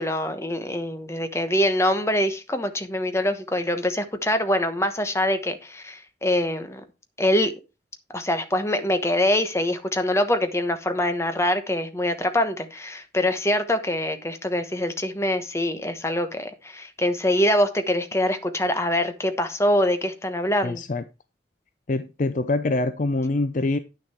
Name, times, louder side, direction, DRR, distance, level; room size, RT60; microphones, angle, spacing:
voice 1, 0.0-6.8 7.2-7.5 8.1-20.8, left 1 dB, 15° left, 1.1 m, -24 dB
voice 2, 20.6-21.0 21.9-23.8, left 2 dB, 45° left, 0.5 m, -24 dB
9.8 x 6.5 x 4.4 m
head